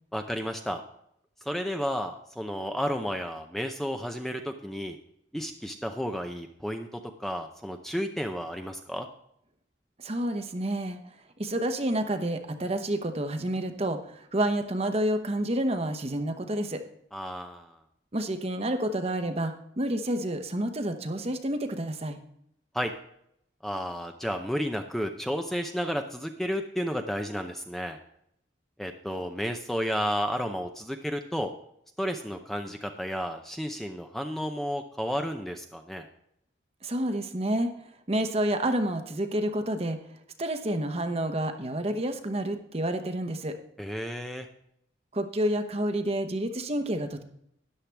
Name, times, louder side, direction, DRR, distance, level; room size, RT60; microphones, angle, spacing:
voice 1, 0.1-0.8 1.4-5.0 5.3-9.1 17.1-17.8 22.7-22.9 23.6-28.0 28.8-31.5 32.0-36.1 43.8-44.5, equal, ahead, 5 dB, 0.6 m, -32 dB
voice 2, 10.0-11.0 11.4-16.8 18.1-22.2 36.8-37.7 38.1-40.0 40.4-43.6 45.1-47.2, right 1 dB, 35° right, 7 dB, 1.0 m, -29 dB
13.0 x 10.0 x 3.4 m, 0.73 s
head